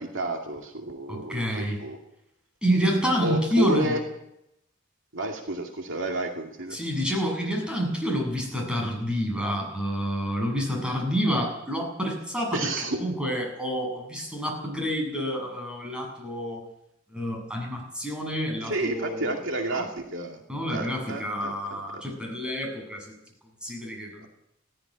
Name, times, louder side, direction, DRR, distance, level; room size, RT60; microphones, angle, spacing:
voice 1, 0.0-2.0 3.2-4.0 5.1-6.8 12.5-13.0 18.6-20.4 20.7-22.0 24.2-24.3, right 2 dB, 65° right, 2 dB, 2.4 m, -31 dB
voice 2, 1.1-1.8 2.6-4.0 6.7-12.6 12.9-16.6 17.1-19.3 19.7-19.9 20.5-23.1 23.6-24.2, equal, 5° right, -1 dB, 7.4 m, -28 dB
17.0 x 15.5 x 9.9 m, 0.83 s
head